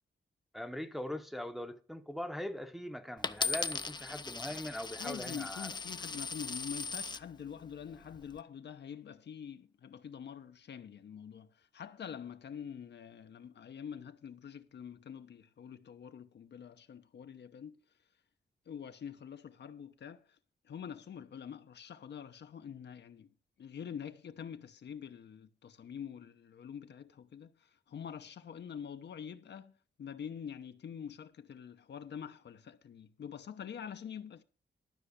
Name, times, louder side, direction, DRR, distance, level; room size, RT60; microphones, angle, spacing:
voice 1, 0.5-5.7, left 1 dB, ahead, 0.8 m, -41 dB
Coin (dropping), 3.2-7.2 7.9-8.4, left 4 dB, 25° left, 0.5 m, -38 dB
voice 2, 5.0-11.5 11.7-17.8 18.7-20.2 20.7-23.3 23.6-27.5 27.9-29.7 30.0-34.4, left 8 dB, 70° left, 0.9 m, -45 dB
12.5 x 5.7 x 6.5 m
wide cardioid pair, 125°, 18 cm